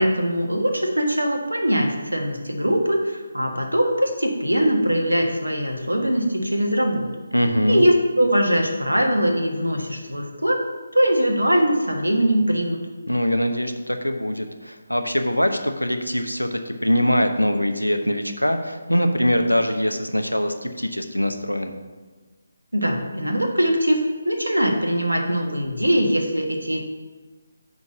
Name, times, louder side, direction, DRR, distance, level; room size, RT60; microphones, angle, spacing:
voice 1, 0.0-7.1 7.7-10.6 10.9-12.8 22.7-26.8, equal, 80° right, 3 dB, 1.6 m, -21 dB
voice 2, 7.3-7.8 13.1-21.7, equal, 90° left, 6 dB, 0.9 m, -22 dB
9.6 x 4.1 x 6.8 m, 1.3 s
figure-of-eight pair, 150°, 0 cm